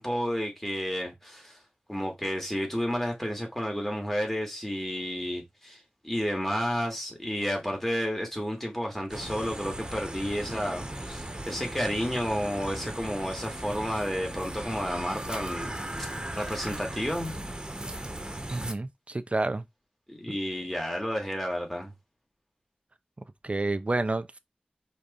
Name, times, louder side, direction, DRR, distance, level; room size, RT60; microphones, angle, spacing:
voice 1, 0.0-1.6 1.9-16.1 16.3-17.3 20.1-21.9, equal, 10° left, 3.0 m, -31 dB
sound 1, 9.1-18.7, right 1 dB, 25° right, 1.4 m, -37 dB
voice 2, 18.5-19.6 20.3-20.4 23.2-24.4, right 2 dB, 40° right, 0.7 m, -30 dB
5.2 x 4.4 x 4.2 m
wide cardioid pair, 70°, 3 cm